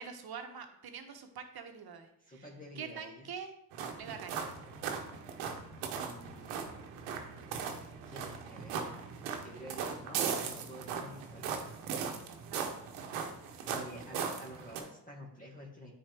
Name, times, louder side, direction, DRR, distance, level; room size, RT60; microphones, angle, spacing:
voice 1, 0.0-2.4 2.8-3.5 4.0-4.4 12.4-12.7, right 6 dB, 50° right, 6 dB, 1.1 m, -45 dB
voice 2, 2.2-3.3 5.9-7.1 8.1-8.9 9.4-11.8 13.7-15.9, equal, 15° left, -2 dB, 1.7 m, -49 dB
sound 1, 3.7-14.8, right 6 dB, 90° right, 1.0 m, -39 dB
9.3 x 4.0 x 3.5 m, 0.76 s
supercardioid pair, 60°, 48 cm